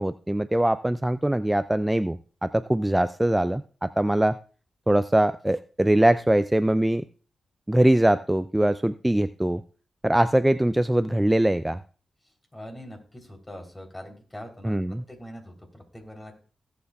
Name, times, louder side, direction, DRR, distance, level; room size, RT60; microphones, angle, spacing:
voice 1, 0.0-4.4 4.9-7.0 7.7-9.6 10.0-11.8 14.6-15.0, right 1 dB, 15° right, 13 dB, 0.4 m, -22 dB
voice 2, 12.5-14.7 15.1-16.3, equal, 20° left, 3 dB, 3.6 m, -42 dB
17.0 x 8.0 x 2.4 m, 0.39 s
cardioid pair, 55°, 0 cm